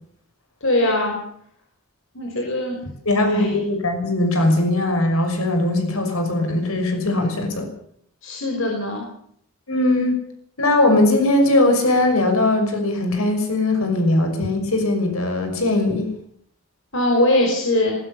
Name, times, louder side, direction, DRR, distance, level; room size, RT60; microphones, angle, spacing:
voice 1, 0.6-1.2 2.1-2.8 3.2-3.5 8.2-9.1 16.9-18.0, left 1 dB, 60° left, 1 dB, 5.4 m, -21 dB
voice 2, 3.1-7.7 9.7-10.2 10.6-16.1, left 2 dB, 80° left, 5 dB, 6.0 m, -20 dB
20.5 x 20.5 x 7.0 m, 0.65 s
head